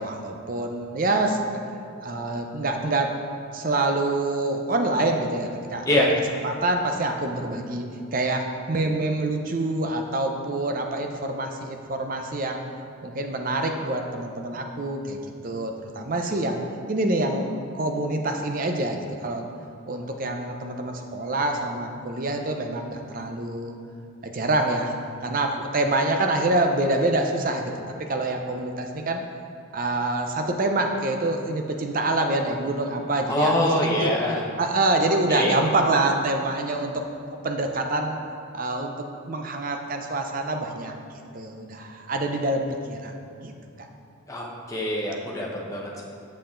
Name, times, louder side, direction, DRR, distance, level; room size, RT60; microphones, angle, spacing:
voice 1, 0.0-1.4 2.0-3.1 3.5-6.1 6.4-12.6 13.0-16.6 16.9-19.5 19.9-23.7 24.2-24.9 25.2-27.7 28.0-29.2 29.7-34.1 34.6-37.1 37.4-38.2 38.5-40.9 41.3-43.1 43.4-43.5, right 2 dB, 40° right, 4 dB, 0.6 m, -26 dB
voice 2, 33.3-34.4 35.3-35.5 44.3-46.0, left 1 dB, 15° left, -3 dB, 1.0 m, -24 dB
7.5 x 6.7 x 3.8 m, 2.5 s
head